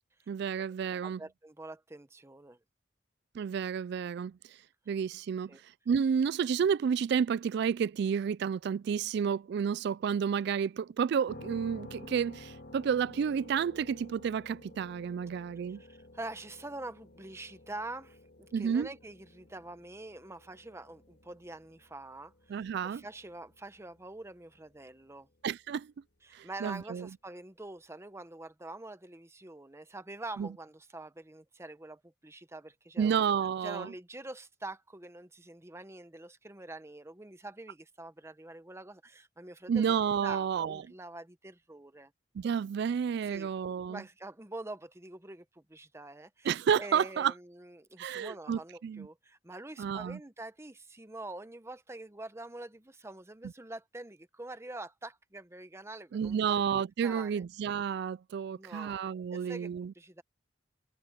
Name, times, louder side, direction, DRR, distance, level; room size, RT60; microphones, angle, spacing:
voice 1, 0.3-1.2 3.3-4.4 4.9-5.5 5.9-15.8 18.5-18.9 22.5-23.0 25.4-25.9 26.3-27.1 30.4-30.5 33.0-33.9 39.7-40.8 42.3-44.0 46.4-47.3 48.0-49.1 49.8-50.2 56.1-59.9, right 7 dB, 60° right, 0.3 m, -31 dB
voice 2, 1.0-2.6 5.5-5.6 15.7-25.3 26.2-33.2 33.6-42.1 43.3-43.5 43.9-57.4 58.5-59.0 59.3-60.2, right 2 dB, 15° right, 0.9 m, -45 dB
sound 1, 11.3-25.0, left 2 dB, 60° left, 1.9 m, -52 dB
head